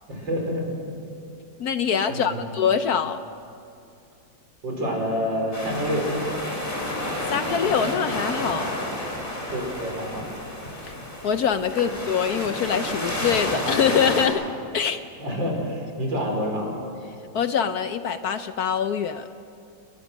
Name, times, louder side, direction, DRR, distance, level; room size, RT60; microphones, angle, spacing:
voice 1, 0.1-0.9 2.1-2.5 4.6-6.1 9.5-10.4 11.7-11.9 15.2-16.7, equal, 75° right, 0 dB, 5.7 m, -28 dB
voice 2, 1.6-3.2 7.3-8.7 11.2-14.4 14.7-15.0 17.3-19.3, left 7 dB, 65° left, 10 dB, 1.1 m, -24 dB
sound 1, 5.5-14.3, left 1 dB, 25° left, 4.0 m, -30 dB
29.5 x 20.0 x 6.4 m, 2.5 s
omnidirectional pair, 2.0 m